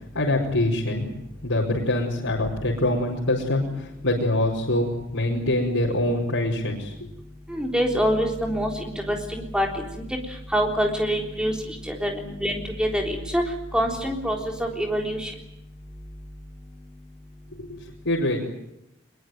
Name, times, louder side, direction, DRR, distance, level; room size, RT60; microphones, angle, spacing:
voice 1, 0.1-1.0 1.4-7.1 17.5-18.4, left 1 dB, 90° left, -4 dB, 4.8 m, -24 dB
voice 2, 7.5-10.0 10.5-11.5 11.9-13.4 13.7-15.3, equal, 5° right, 1 dB, 3.7 m, -25 dB
22.0 x 22.0 x 9.4 m, 0.85 s
head